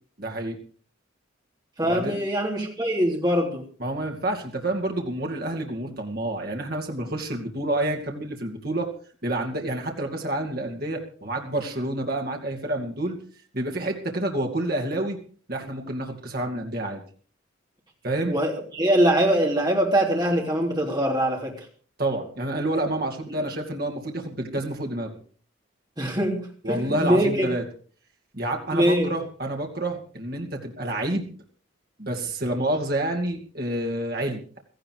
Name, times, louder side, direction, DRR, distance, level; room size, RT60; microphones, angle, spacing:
voice 1, 0.2-0.6 1.8-2.2 3.8-8.9 9.2-13.2 13.5-15.2 15.5-17.0 18.0-18.4 22.0-25.2 26.6-27.6 28.3-31.2 32.0-34.4, right 1 dB, 45° right, 1 dB, 2.5 m, -28 dB
voice 2, 1.8-3.6 18.3-21.6 23.3-23.4 26.0-27.5 28.7-29.1, right 1 dB, 20° right, 0 dB, 3.4 m, -23 dB
17.0 x 14.5 x 4.8 m, 0.43 s
head